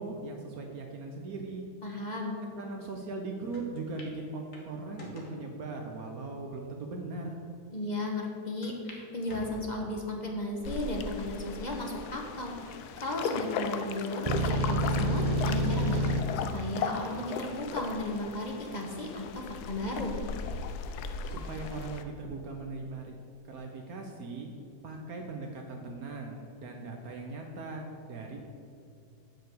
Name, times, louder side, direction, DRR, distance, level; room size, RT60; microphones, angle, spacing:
voice 1, 0.0-1.6 2.6-7.4 21.2-23.1 23.5-24.6 24.8-28.4, right 3 dB, 70° right, 2 dB, 1.3 m, -39 dB
voice 2, 1.8-2.4 7.7-12.6 13.0-20.1, left 1 dB, 30° left, 1 dB, 1.2 m, -35 dB
sound 1, 3.5-3.6 4.0-4.1 4.5-5.4 6.1-6.2 6.9-7.0 7.3-7.4 8.6-9.0 9.3-10.0 10.6-11.0 11.6-11.7 12.8-13.2, left 1 dB, 55° left, 2.0 m, -48 dB
sound 2, 10.6-22.0, left 6 dB, 80° left, 1.2 m, -37 dB
sound 3, 14.3-16.2, right 1 dB, 45° right, 0.4 m, -27 dB
9.3 x 5.2 x 7.8 m, 2.5 s
omnidirectional pair, 1.7 m